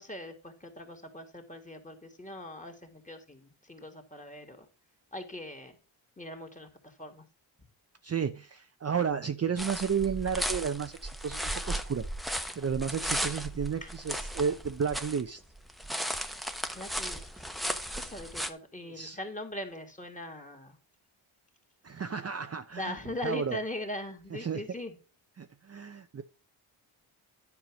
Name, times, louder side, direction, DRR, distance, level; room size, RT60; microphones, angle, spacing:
voice 1, 0.0-4.7 5.1-5.8 6.2-7.2 13.0-13.3 13.8-13.9 16.7-17.5 18.0-20.8 22.8-25.0, left 1 dB, 15° left, 4 dB, 2.5 m, -41 dB
voice 2, 8.0-12.0 12.6-15.4 18.9-19.2 21.8-22.9 23.2-23.6 24.3-24.6 25.4-26.2, right 6 dB, 30° right, 8 dB, 0.7 m, -32 dB
sound 1, 9.6-15.2 15.5-18.5, equal, ahead, 1.1 m, -35 dB
10.0 x 4.9 x 6.2 m, 0.35 s
cardioid pair, 70°, 48 cm